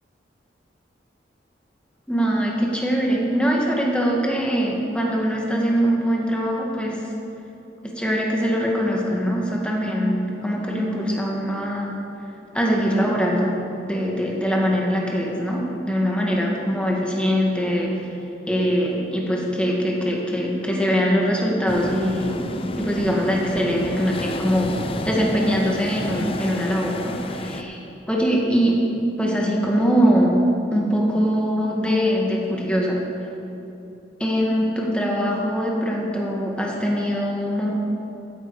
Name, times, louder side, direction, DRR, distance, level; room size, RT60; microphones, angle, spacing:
voice 1, 2.1-7.0 7.8-11.9 12.5-13.5 13.9-17.9 18.5-22.4 22.8-24.8 25.0-27.8 28.1-28.8 29.2-30.4 30.7-33.0 34.2-37.7, equal, 5° left, -2 dB, 1.6 m, -22 dB
sound 1, 21.7-27.6, left 2 dB, 30° left, 0.6 m, -31 dB
15.0 x 9.2 x 4.7 m, 2.8 s
head